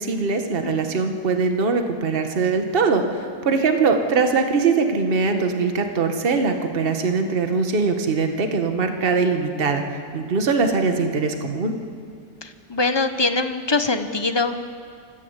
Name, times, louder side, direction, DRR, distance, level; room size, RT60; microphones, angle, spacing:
voice 1, 0.0-9.8 10.1-11.7, right 4 dB, 35° right, 6 dB, 1.4 m, -21 dB
voice 2, 12.7-14.6, left 3 dB, 25° left, 8 dB, 0.5 m, -22 dB
24.0 x 14.5 x 8.1 m, 2.3 s
omnidirectional pair, 1.7 m